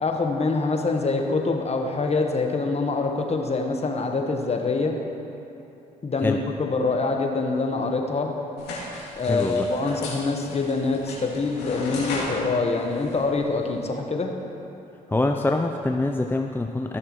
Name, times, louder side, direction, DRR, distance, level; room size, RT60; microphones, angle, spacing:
voice 1, 0.0-4.9 6.0-8.3 9.2-14.3, left 3 dB, 40° left, 3 dB, 1.2 m, -25 dB
sound 1, 8.6-13.8, left 2 dB, 85° left, 2.3 m, -36 dB
voice 2, 9.3-9.7 15.1-17.0, left 2 dB, 10° left, 4 dB, 0.5 m, -24 dB
16.5 x 6.4 x 3.1 m, 2.9 s
supercardioid pair, 60°, 17 cm